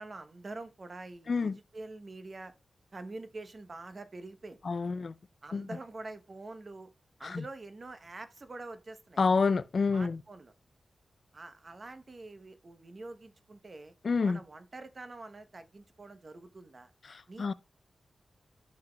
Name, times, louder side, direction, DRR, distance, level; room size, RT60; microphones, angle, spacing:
voice 1, 0.0-2.5 2.9-4.6 5.4-6.9 7.2-9.2 9.9-10.5 11.3-13.9 14.2-16.9 17.3-17.5, right 2 dB, 50° right, 0.8 m, -46 dB
voice 2, 4.7-5.1 5.5-5.7 7.2-7.4 9.2-10.2 14.0-14.4 17.1-17.5, left 4 dB, 60° left, 0.3 m, -28 dB
12.5 x 5.7 x 2.2 m
cardioid pair, 50°, 0 cm